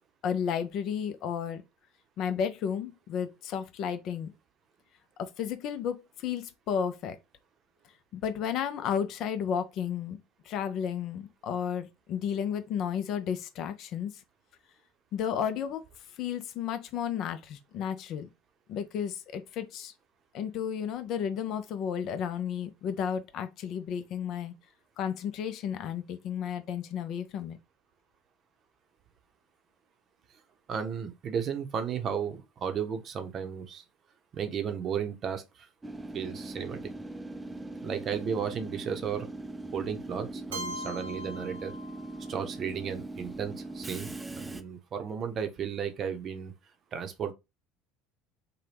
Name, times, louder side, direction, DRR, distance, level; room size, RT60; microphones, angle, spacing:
voice 1, 0.2-1.6 2.2-4.3 5.2-7.2 8.1-10.2 10.5-14.1 15.1-15.8 16.2-18.3 18.7-19.9 20.3-24.5 25.0-27.6, left 8 dB, 55° left, 0.5 m, -32 dB
voice 2, 30.7-33.8 34.3-35.7 36.1-36.8 37.8-39.3 39.7-41.7 42.3-46.5 46.9-47.3, right 7 dB, 45° right, 0.7 m, -34 dB
Train / Subway metro underground, 35.8-44.6, right 2 dB, 15° right, 0.4 m, -41 dB
Keyboard (musical), 40.5-42.4, equal, 85° right, 0.8 m, -41 dB
2.8 x 2.2 x 3.4 m
hypercardioid pair, 75°, 0 cm